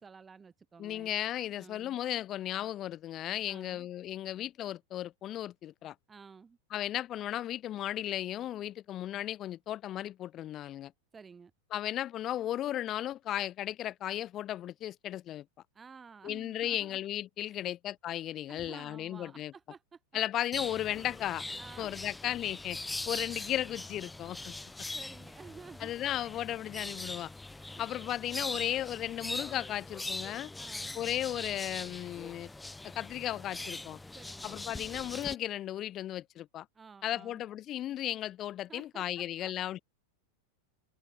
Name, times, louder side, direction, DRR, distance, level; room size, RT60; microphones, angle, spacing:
voice 1, 0.0-1.1 1.6-2.0 3.5-3.9 6.1-6.6 11.1-11.5 15.7-17.0 17.5-17.7 18.5-20.0 21.6-22.1 23.4-23.6 24.5-25.9 27.5-27.9 30.5-31.0 34.1-34.5 36.7-37.4 38.7-39.5, right 5 dB, 15° right, 3.9 m, -53 dB
voice 2, 0.8-5.9 6.7-10.9 11.7-15.4 16.2-19.5 20.1-21.4 21.8-22.8 23.1-24.5 25.8-27.3 27.8-30.5 30.9-32.5 32.8-34.0 34.4-36.7 37.0-39.8, left 12 dB, 30° left, 0.5 m, -35 dB
sound 1, 20.5-35.4, left 2 dB, 5° left, 0.9 m, -41 dB
open air
figure-of-eight pair, 90°, 0 cm